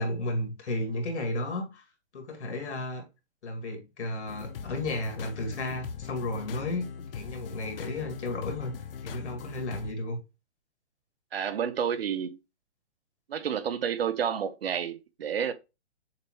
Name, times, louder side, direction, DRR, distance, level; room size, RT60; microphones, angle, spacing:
voice 1, 0.0-1.8 2.1-3.0 3.4-6.8 7.1-8.7 9.0-10.2, left 2 dB, 85° left, 1.9 m, -33 dB
sound 1, 4.3-9.9, left 7 dB, 55° left, 0.5 m, -41 dB
voice 2, 11.3-12.4 13.3-15.5, right 8 dB, 60° right, 0.6 m, -30 dB
6.7 x 2.2 x 3.0 m
hypercardioid pair, 175°, 33 cm